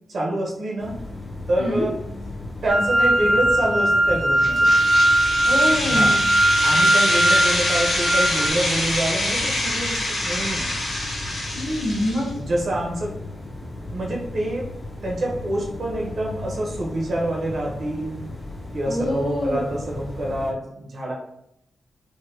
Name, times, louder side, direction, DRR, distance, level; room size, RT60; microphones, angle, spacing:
voice 1, 0.1-1.0 1.5-2.0 2.6-4.7 5.8-6.2 6.6-10.7 12.3-13.1 13.9-14.7 15.0-18.2 18.7-21.1, right 1 dB, 50° right, -2 dB, 0.7 m, -26 dB
sound 1, 0.8-20.5, left 2 dB, 15° left, 0.5 m, -36 dB
sound 2, 2.7-8.5, right 1 dB, 85° right, 0.6 m, -19 dB
sound 3, 4.4-12.3, left 1 dB, 80° left, 1.2 m, -25 dB
voice 2, 5.4-6.1 11.5-12.3 18.9-19.6, left 1 dB, 60° left, -3 dB, 0.9 m, -25 dB
3.9 x 2.2 x 2.6 m, 0.78 s
wide cardioid pair, 180°, 0 cm